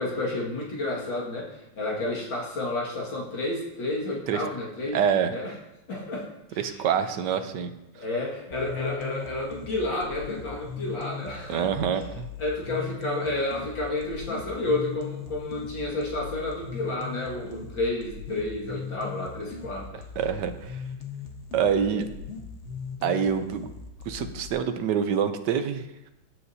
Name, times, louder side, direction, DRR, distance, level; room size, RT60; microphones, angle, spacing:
voice 1, 0.0-5.0 5.3-5.5 5.9-6.8 7.9-11.7 12.4-20.0 21.9-22.0, left 2 dB, 65° left, -4 dB, 2.8 m, -31 dB
voice 2, 4.9-5.3 6.6-7.7 11.5-12.2 20.2-20.8 21.5-22.1 23.0-23.7 24.0-25.8, right 7 dB, 65° right, 8 dB, 1.3 m, -26 dB
sound 1, 8.5-24.5, left 5 dB, 40° left, 1.3 m, -39 dB
15.5 x 7.8 x 2.8 m, 0.92 s
omnidirectional pair, 2.2 m